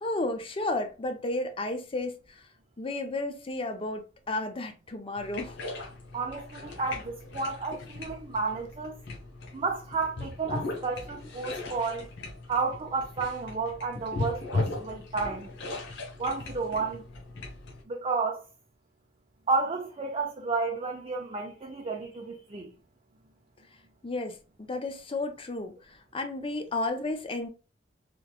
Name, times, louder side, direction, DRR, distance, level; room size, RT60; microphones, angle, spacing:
voice 1, 0.0-2.4 2.8-5.6 24.0-27.5, left 2 dB, 30° left, 0.5 m, -33 dB
sound 1, 5.2-17.8, left 2 dB, 65° left, 0.9 m, -38 dB
voice 2, 6.1-9.0 9.5-12.1 12.5-15.5 16.2-17.0 17.9-18.4 19.5-22.7, right 4 dB, 30° right, 0.4 m, -31 dB
3.4 x 2.9 x 2.3 m
head